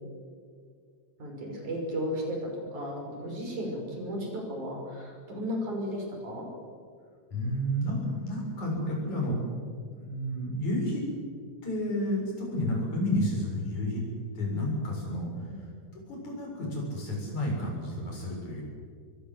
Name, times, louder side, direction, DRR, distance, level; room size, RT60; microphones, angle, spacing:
voice 1, 1.2-6.5 15.5-15.7, equal, 85° right, 1 dB, 7.2 m, -34 dB
voice 2, 7.3-9.4 9.9-11.1 11.6-14.0 14.3-18.6, left 1 dB, 75° left, -2 dB, 8.6 m, -31 dB
26.5 x 22.0 x 8.0 m, 2.1 s
omnidirectional pair, 3.4 m